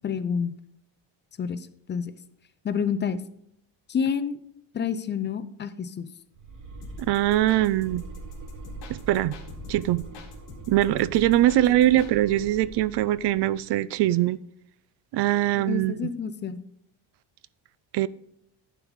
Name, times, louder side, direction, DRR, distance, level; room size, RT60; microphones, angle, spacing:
voice 1, 0.0-0.5 1.4-2.1 2.6-3.2 3.9-4.4 4.7-6.1 15.6-16.6, left 6 dB, 25° left, 12 dB, 0.4 m, -28 dB
sound 1, 6.3-13.6, right 3 dB, 45° right, 1.6 m, -43 dB
sound 2, 6.8-12.1, left 4 dB, 70° left, 2.2 m, -45 dB
voice 2, 7.1-8.0 8.9-9.4 9.7-10.0 10.7-14.4 15.1-16.1 17.9-18.1, right 14 dB, 65° right, 19 dB, 0.5 m, -22 dB
11.0 x 4.8 x 5.2 m, 0.74 s
cardioid pair, 155°, 44 cm